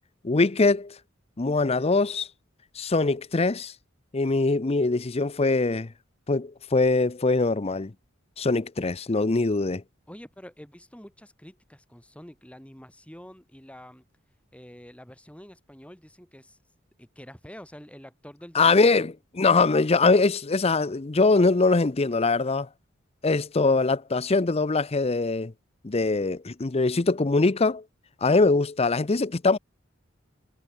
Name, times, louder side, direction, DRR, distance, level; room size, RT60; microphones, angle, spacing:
voice 1, 0.2-0.9 1.4-2.3 2.8-3.7 4.1-5.9 6.3-7.9 8.4-9.8 18.5-22.7 23.2-25.5 25.8-27.8 28.2-29.6, left 3 dB, 30° left, 0.7 m, -22 dB
voice 2, 10.1-14.0 14.5-16.6 17.0-19.1, equal, 5° left, 3.9 m, -47 dB
head